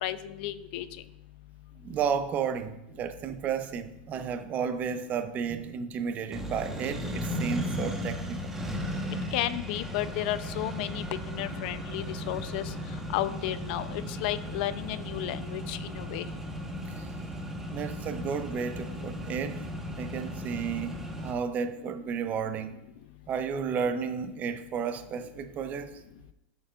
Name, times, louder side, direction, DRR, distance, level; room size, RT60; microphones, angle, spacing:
voice 1, 0.0-0.9 9.3-12.7 13.1-16.3, left 14 dB, 60° left, 0.5 m, -33 dB
voice 2, 1.8-8.4 17.0-17.1 17.7-19.6 20.0-22.7 23.3-26.0, right 6 dB, 30° right, 0.6 m, -32 dB
Accelerating revving vroom, 6.3-21.3, equal, 5° right, 1.1 m, -36 dB
13.5 x 6.3 x 2.4 m
supercardioid pair, 135°, 6 cm